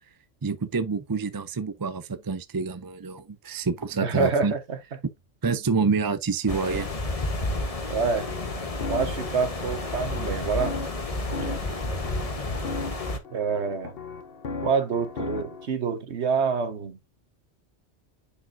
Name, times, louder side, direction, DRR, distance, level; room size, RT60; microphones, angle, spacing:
voice 1, 0.4-4.5 5.4-6.9, right 4 dB, 30° right, 0.4 m, -27 dB
voice 2, 4.0-4.8 7.9-8.3 8.9-10.8 11.4-11.5 13.3-13.9 14.6-17.0, right 5 dB, 75° right, 1.5 m, -27 dB
sound 1, 6.5-13.2, left 2 dB, 35° left, 1.2 m, -31 dB
sound 2, 8.0-15.7, left 4 dB, 60° left, 1.2 m, -37 dB
9.8 x 4.7 x 2.6 m
omnidirectional pair, 1.1 m